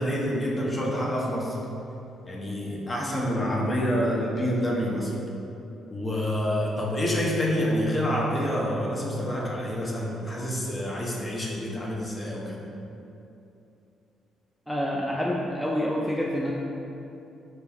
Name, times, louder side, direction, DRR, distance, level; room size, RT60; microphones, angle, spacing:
voice 1, 0.0-1.6 2.3-5.1 5.9-12.6, equal, 30° left, -3 dB, 1.0 m, -27 dB
voice 2, 14.7-16.5, equal, 5° left, -4 dB, 0.5 m, -28 dB
4.4 x 3.4 x 3.0 m, 2.8 s
hypercardioid pair, 50°, 0 cm